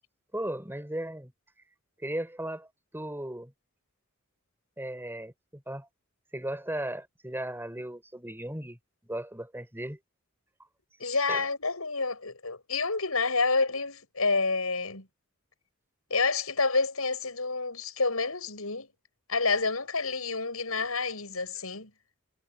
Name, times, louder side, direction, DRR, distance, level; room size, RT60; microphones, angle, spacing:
voice 1, 0.3-1.3 2.0-3.5 4.8-5.9 6.3-8.8 9.0-10.0 11.1-11.5, right 1 dB, 10° right, 5.3 m, -36 dB
voice 2, 11.0-15.1 16.1-18.9 19.3-21.9, left 4 dB, 85° left, 7.7 m, -28 dB
head